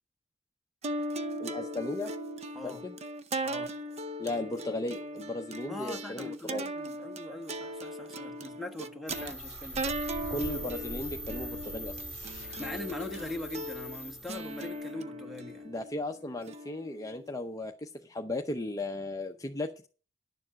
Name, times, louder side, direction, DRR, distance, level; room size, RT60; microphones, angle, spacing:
sound 1, 0.8-17.3, right 1 dB, 35° right, 0.7 m, -38 dB
voice 1, 1.4-2.1 2.6-3.0 4.2-6.6 10.3-12.0 15.6-19.9, left 2 dB, 20° left, 0.7 m, -36 dB
voice 2, 5.7-10.0 12.4-15.7, left 2 dB, ahead, 1.2 m, -41 dB
sound 2, 9.1-14.8, left 1 dB, 75° right, 4.2 m, -41 dB
11.5 x 7.1 x 6.3 m
head